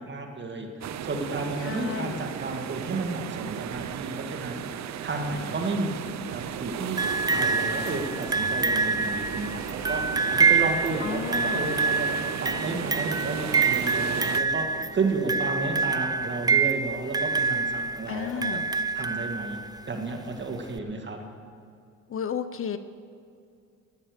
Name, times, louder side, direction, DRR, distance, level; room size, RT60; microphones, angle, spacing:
voice 1, 0.0-5.9 6.2-7.0 7.3-12.1 12.4-18.6 18.9-19.6 19.9-21.2, right 3 dB, 40° right, 3 dB, 2.0 m, -32 dB
sound 1, 0.8-14.4, right 9 dB, 65° right, 0.7 m, -35 dB
voice 2, 1.6-2.3 11.0-11.8 18.1-18.7 22.1-22.8, left 7 dB, 45° left, 12 dB, 0.6 m, -33 dB
sound 2, 7.0-19.8 20.8-20.9, right 4 dB, 15° right, 0.3 m, -26 dB
16.0 x 10.0 x 5.0 m, 2.4 s
cardioid pair, 90°, 30 cm